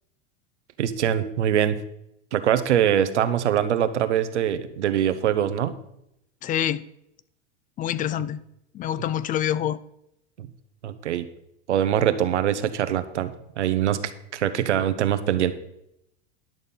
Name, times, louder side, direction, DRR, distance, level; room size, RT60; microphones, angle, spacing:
voice 1, 0.8-1.8 2.3-5.8 10.4-10.5 10.8-11.3 11.7-14.0 14.3-15.5, right 10 dB, 85° right, 0.9 m, -23 dB
voice 2, 6.4-6.8 7.8-8.4 8.7-9.8, left 10 dB, 25° left, 0.4 m, -26 dB
11.0 x 6.6 x 5.5 m
hypercardioid pair, 105°, 34 cm